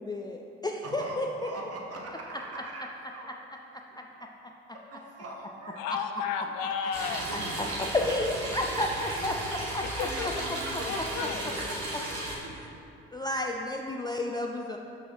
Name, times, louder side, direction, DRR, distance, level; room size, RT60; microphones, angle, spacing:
voice 1, 0.0-1.3 7.3-9.4 9.7-10.3 13.1-14.8, left 2 dB, 15° left, 1 dB, 0.3 m, -31 dB
voice 2, 0.8-2.9 3.1-3.3 3.9-4.0 4.9-5.8 7.3-7.9 8.3-8.9 9.2-9.7 10.0-12.6, right 2 dB, 45° right, -1 dB, 1.1 m, -42 dB
voice 3, 5.8-7.2 10.0-10.4 10.9-11.4, left 7 dB, 70° left, 6 dB, 0.5 m, -33 dB
sound 1, 6.9-12.4, right 1 dB, 75° right, 1.3 m, -35 dB
6.1 x 6.0 x 3.1 m, 2.9 s
figure-of-eight pair, 45°, 33 cm